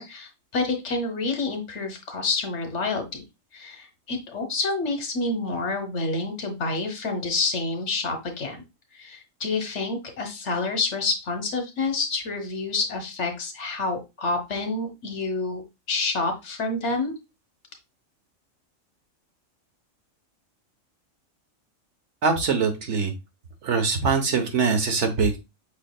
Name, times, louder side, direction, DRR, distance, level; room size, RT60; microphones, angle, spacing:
voice 1, 0.0-3.2 3.5-8.6 8.9-17.1, left 3 dB, 65° left, 6 dB, 1.3 m, -28 dB
voice 2, 22.2-23.1 23.6-25.4, right 5 dB, 65° right, 5 dB, 1.2 m, -23 dB
5.6 x 3.9 x 2.2 m, 0.24 s
omnidirectional pair, 1.3 m